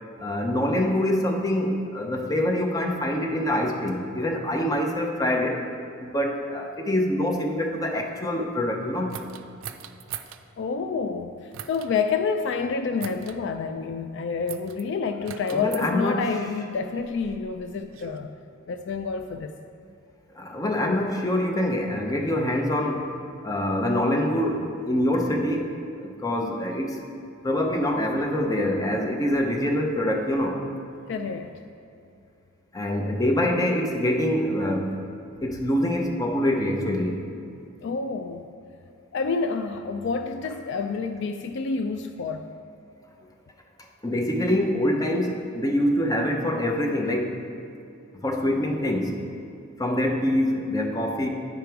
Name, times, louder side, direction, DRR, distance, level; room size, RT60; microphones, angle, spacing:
voice 1, 0.2-5.6 6.0-9.1 15.5-16.2 20.3-23.1 23.4-25.7 26.0-27.0 27.4-30.6 32.7-35.0 35.4-37.2 44.0-47.4 48.2-49.2 49.8-51.3, left 1 dB, 15° left, 2 dB, 0.6 m, -25 dB
sound 1, 9.1-10.4 11.5-11.9 13.0-13.4 14.5-14.8 15.2-15.9 16.8-18.2, right 9 dB, 70° right, 0.4 m, -40 dB
voice 2, 10.6-18.3 18.7-19.5 31.1-31.5 37.8-38.5 39.1-42.5, left 5 dB, 60° left, 7 dB, 0.3 m, -28 dB
9.3 x 5.1 x 4.6 m, 2.5 s
head